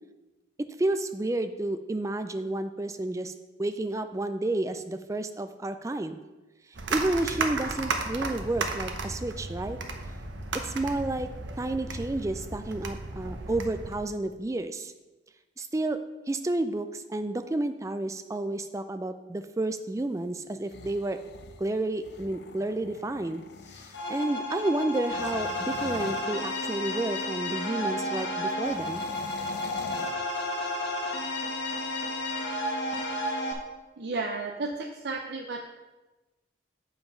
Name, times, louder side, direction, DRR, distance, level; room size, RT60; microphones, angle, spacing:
voice 1, 0.8-3.3 3.6-6.2 6.9-9.8 10.5-11.3 11.6-14.9 15.6-16.0 16.3-21.2 21.6-23.4 24.1-29.1, right 2 dB, 15° right, 10 dB, 0.3 m, -30 dB
sound 1, 6.7-14.0, right 3 dB, 85° right, 0.9 m, -34 dB
sound 2, 20.5-24.2 25.0-27.0 28.6-30.9, left 4 dB, 60° left, 0.5 m, -42 dB
sound 3, 23.9-33.5, left 1 dB, 75° left, 1.4 m, -32 dB
voice 2, 34.0-35.6, right 3 dB, 60° right, 2 dB, 0.6 m, -33 dB
7.5 x 5.7 x 5.5 m, 1.1 s
head